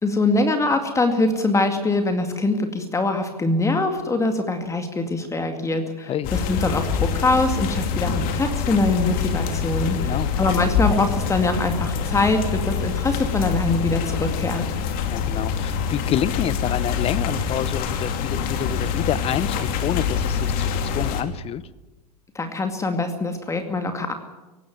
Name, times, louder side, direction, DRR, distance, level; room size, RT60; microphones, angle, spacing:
voice 1, 0.0-14.6 22.3-24.1, left 2 dB, 15° left, 6 dB, 2.2 m, -23 dB
sound 1, 6.2-21.2, left 6 dB, 45° left, 2.7 m, -25 dB
voice 2, 9.9-10.3 15.0-21.6, left 10 dB, 30° left, 17 dB, 0.9 m, -28 dB
17.5 x 17.5 x 9.6 m, 1.1 s
hypercardioid pair, 95°, 20 cm